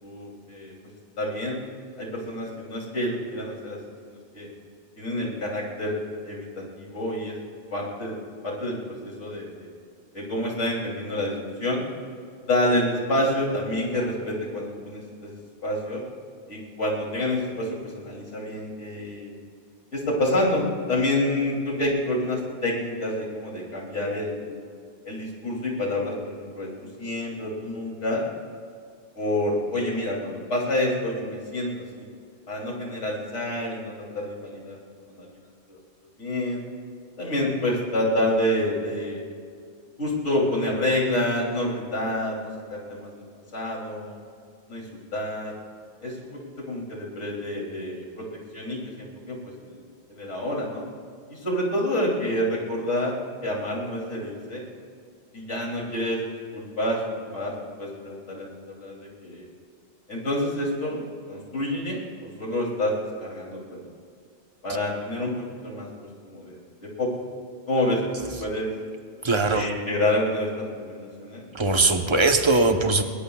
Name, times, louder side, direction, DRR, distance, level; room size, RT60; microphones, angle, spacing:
voice 1, 0.0-0.7 1.2-1.6 2.0-3.8 4.1-4.5 5.0-5.9 6.2-6.5 6.8-7.3 7.7-8.2 8.4-9.7 10.1-11.3 11.6-11.8 12.5-15.4 15.6-16.0 16.5-19.3 19.9-24.6 25.0-26.7 27.0-28.2 29.1-32.0 32.5-34.8 35.1-35.3 35.7-35.8 36.2-36.6 37.2-39.2 40.0-43.1 43.5-44.2 44.7-45.5 46.0-48.2 48.5-49.8 50.1-50.8 51.3-53.1 53.4-54.6 55.3-56.2 56.5-57.5 57.8-59.5 60.1-61.0 61.3-62.9 63.2-63.8 64.6-65.9 66.2-66.6 67.0-67.1 67.7-68.7 69.5-71.4, left 1 dB, 85° left, -3 dB, 3.3 m, -28 dB
voice 2, 69.2-69.7 71.5-73.0, right 3 dB, 25° right, 5 dB, 0.9 m, -20 dB
21.0 x 20.0 x 2.3 m, 2.2 s
omnidirectional pair, 1.2 m